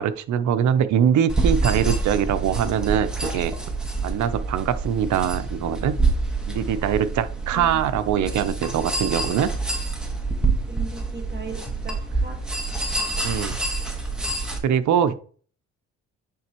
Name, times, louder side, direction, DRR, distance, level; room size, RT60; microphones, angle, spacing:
voice 1, 0.0-3.5 4.0-6.0 6.5-9.5 13.2-13.6 14.6-15.1, right 9 dB, 70° right, 11 dB, 0.7 m, -23 dB
sound 1, 1.3-14.6, right 3 dB, 5° right, 1.4 m, -27 dB
voice 2, 10.7-12.4 14.3-14.4, right 3 dB, 35° right, 2 dB, 1.7 m, -38 dB
9.9 x 3.5 x 3.0 m, 0.43 s
cardioid pair, 90°, 30 cm